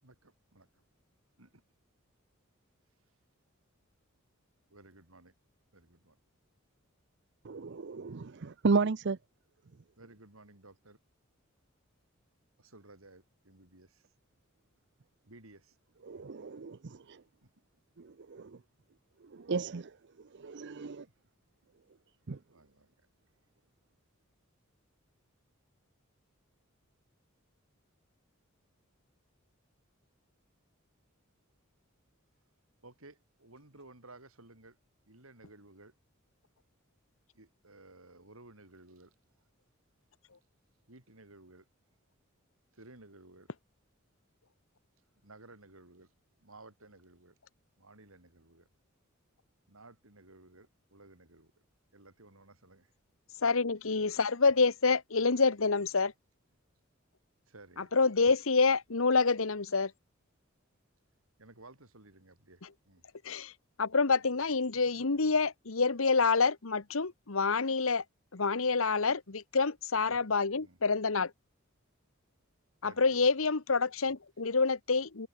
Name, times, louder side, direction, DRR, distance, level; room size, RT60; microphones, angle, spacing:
voice 1, 0.0-0.8 1.4-1.6 4.7-5.3 5.7-6.2 10.0-11.0 12.6-14.1 15.3-15.8 17.4-17.5 20.8-21.1 22.5-22.9 32.8-34.8 35.1-35.9 37.3-39.1 40.9-41.7 42.7-43.5 45.2-46.1 46.4-47.3 47.8-48.7 49.7-51.5 51.9-52.9 57.4-57.9 61.4-63.0 70.6-70.8 72.8-73.2, right 2 dB, 85° right, 5.1 m, -56 dB
voice 2, 7.4-9.2 16.1-17.2 18.0-18.6 19.3-19.9 20.3-21.1 22.3-22.4, right 4 dB, 60° right, 0.6 m, -33 dB
voice 3, 53.4-56.1 57.9-59.9 63.2-63.5 63.8-68.0 68.3-71.3 72.8-75.3, left 4 dB, 70° left, 1.2 m, -27 dB
head